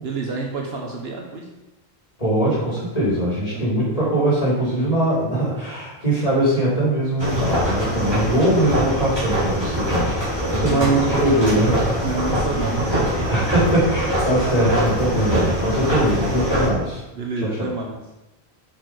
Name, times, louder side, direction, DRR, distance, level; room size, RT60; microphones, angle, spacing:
voice 1, 0.0-1.5 3.5-4.0 10.7-10.9 12.0-13.3 15.1-15.2 17.1-18.0, right 3 dB, 70° right, 0 dB, 1.3 m, -28 dB
voice 2, 2.2-10.3 10.5-11.8 13.3-17.0 17.6-17.7, right 1 dB, 35° left, -6 dB, 3.6 m, -21 dB
sound 1, 7.2-16.7, equal, 25° right, 3.7 m, -23 dB
8.6 x 6.3 x 4.9 m, 0.98 s
omnidirectional pair, 1.1 m